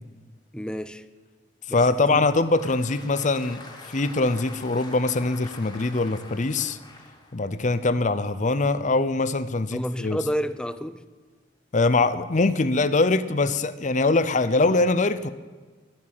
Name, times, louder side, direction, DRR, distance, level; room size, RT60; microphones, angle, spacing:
voice 1, 0.5-1.0 1.7-1.8 2.1-2.3 9.7-11.0, equal, 5° left, 0.6 m, -30 dB
voice 2, 1.7-6.8 7.3-10.2 11.7-15.3, left 3 dB, 40° left, 0.7 m, -23 dB
Applause, 2.1-8.5, left 2 dB, 25° left, 2.3 m, -45 dB
12.5 x 10.0 x 9.0 m
head